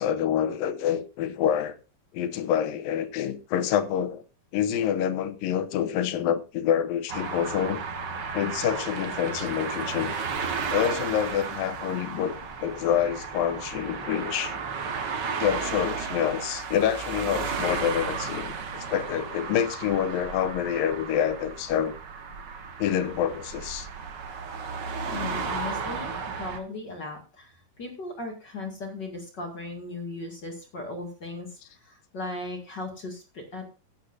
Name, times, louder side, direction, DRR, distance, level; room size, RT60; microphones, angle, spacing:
voice 1, 0.0-1.8 2.1-4.2 4.5-7.8 8.3-10.1 10.7-12.3 12.6-14.6 15.4-21.9 22.8-23.9, left 9 dB, 85° left, 2.6 m, -27 dB
sound 1, 7.1-26.6, right 5 dB, 65° right, 1.1 m, -34 dB
voice 2, 25.1-33.7, left 2 dB, 35° left, 2.3 m, -37 dB
15.5 x 10.0 x 2.6 m
omnidirectional pair, 4.0 m